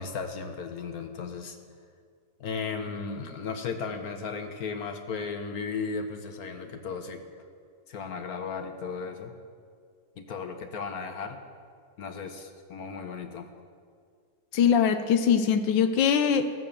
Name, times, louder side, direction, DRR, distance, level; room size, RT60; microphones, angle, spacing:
voice 1, 0.0-1.6 2.4-7.2 7.9-9.3 10.2-11.4 12.0-13.5, left 5 dB, 60° left, 6 dB, 1.1 m, -35 dB
voice 2, 14.5-16.5, left 7 dB, 75° left, 9 dB, 1.4 m, -22 dB
14.5 x 7.8 x 6.9 m, 2.2 s
omnidirectional pair, 2.1 m